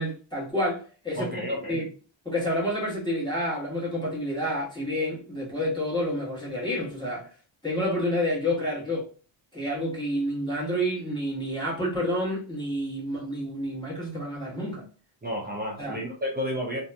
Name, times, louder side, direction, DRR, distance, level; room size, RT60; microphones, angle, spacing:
voice 1, 0.0-1.4 1.7-1.8 2.2-7.3 7.6-9.1 9.5-14.9 15.8-16.0, equal, 10° left, 1.2 m, -29 dB
voice 2, 1.2-1.8 15.2-16.8, equal, 20° right, 0.5 m, -31 dB
2.8 x 2.6 x 2.2 m
wide cardioid pair, 150°, 48 cm